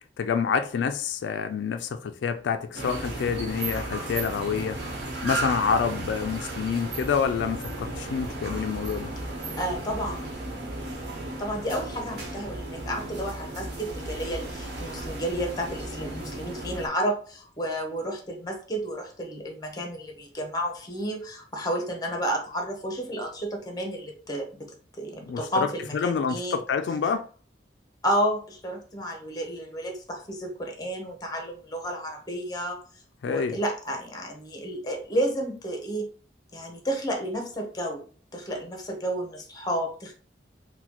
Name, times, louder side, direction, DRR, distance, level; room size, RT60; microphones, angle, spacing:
voice 1, 0.2-4.8 5.2-9.1 25.3-25.7 25.9-27.2 33.2-33.6, left 6 dB, 85° left, 0.3 m, -27 dB
sound 1, 2.7-16.9, right 2 dB, 65° right, 1.0 m, -35 dB
voice 2, 9.6-10.3 11.4-24.6 25.0-26.6 28.0-32.8 33.2-36.1 36.5-38.0 38.3-40.1, equal, 20° left, 0.8 m, -31 dB
4.0 x 2.2 x 2.9 m
head